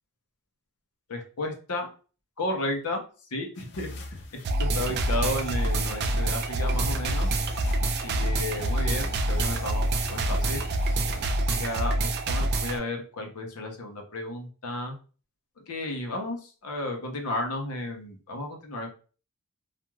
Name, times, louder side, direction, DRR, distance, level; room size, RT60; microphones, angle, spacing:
voice 1, 1.1-1.9 2.4-3.0 3.3-4.2 4.6-7.3 8.0-10.7 11.5-15.0 15.7-18.9, left 2 dB, 85° left, 3 dB, 0.7 m, -33 dB
sound 1, 3.6-11.3, left 2 dB, 55° left, 0.4 m, -39 dB
sound 2, 4.4-12.8, right 2 dB, 45° right, 0.3 m, -26 dB
2.4 x 2.3 x 3.0 m, 0.37 s
head